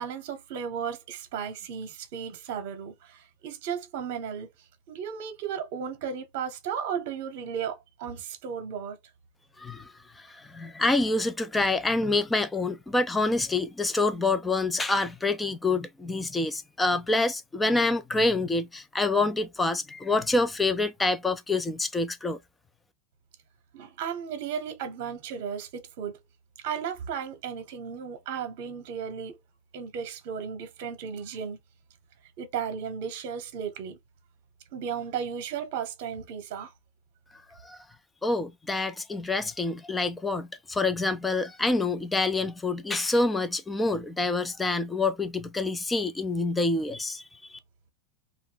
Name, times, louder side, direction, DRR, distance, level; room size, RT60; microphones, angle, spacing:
voice 1, 0.0-4.5 4.9-9.0 23.7-26.2 26.6-29.4 29.7-31.6 32.4-34.0 34.7-36.7, right 7 dB, 60° right, 0.8 m, -35 dB
voice 2, 9.6-9.9 10.3-22.4 37.6-37.8 38.2-47.2, left 2 dB, 10° left, 0.4 m, -27 dB
2.6 x 2.0 x 3.7 m
supercardioid pair, 140°, 0 cm